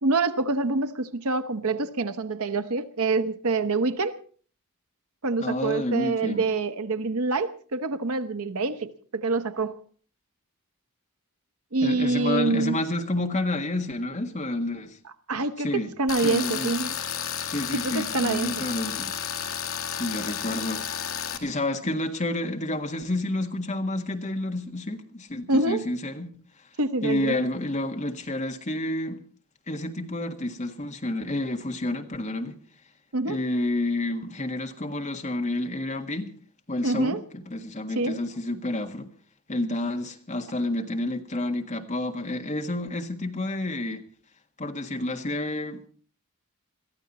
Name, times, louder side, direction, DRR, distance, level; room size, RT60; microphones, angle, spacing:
voice 1, 0.0-4.2 5.2-9.8 11.7-12.8 15.3-15.7 16.0-17.0 17.7-18.6 25.5-25.8 26.8-27.4 33.1-33.4 36.8-37.2 37.9-38.2, right 3 dB, 80° right, 1.0 m, -26 dB
voice 2, 5.4-6.4 11.8-15.0 15.6-15.9 16.2-16.7 17.5-19.1 19.9-20.8 21.4-26.3 27.0-29.2 29.7-32.6 33.2-36.3 36.7-39.1 39.5-44.0 44.6-45.8, left 1 dB, 35° left, 1.6 m, -29 dB
Tools, 16.1-21.4, left 8 dB, 65° left, 2.2 m, -32 dB
22.0 x 14.0 x 4.2 m
head